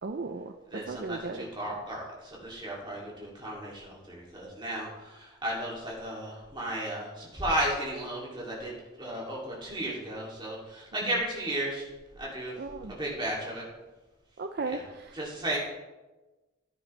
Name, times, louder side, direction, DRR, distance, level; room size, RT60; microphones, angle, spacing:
voice 1, 0.0-1.5 12.6-13.0 14.4-15.2, right 3 dB, 50° right, 6 dB, 0.4 m, -36 dB
voice 2, 0.7-11.8 12.2-12.5 12.9-13.6 14.6-14.8 15.1-15.6, right 1 dB, 20° right, -4 dB, 2.6 m, -34 dB
14.5 x 9.4 x 3.2 m, 1.2 s
head